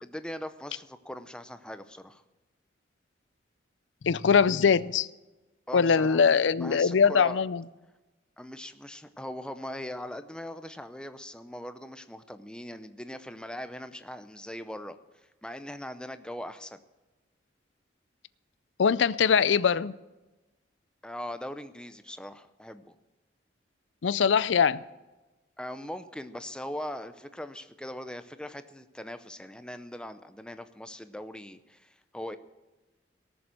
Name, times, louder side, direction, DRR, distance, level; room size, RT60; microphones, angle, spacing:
voice 1, 0.0-2.2 5.7-6.3 6.6-7.4 8.4-15.0 15.4-16.8 21.0-23.0 25.6-32.4, left 1 dB, 5° left, 0.6 m, -40 dB
voice 2, 4.0-5.1 5.7-7.6 18.8-19.9 24.0-24.8, left 6 dB, 80° left, 0.5 m, -22 dB
18.5 x 7.0 x 7.6 m
head